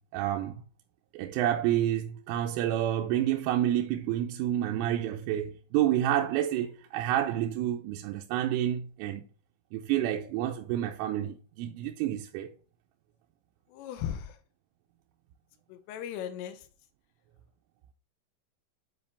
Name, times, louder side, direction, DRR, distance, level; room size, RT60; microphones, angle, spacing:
voice 1, 0.1-0.6 1.1-9.3 9.7-12.5, right 12 dB, 90° right, 3.2 m, -29 dB
voice 2, 13.7-14.4 15.7-16.7, left 9 dB, 85° left, 3.5 m, -37 dB
10.0 x 4.3 x 3.4 m
omnidirectional pair, 5.7 m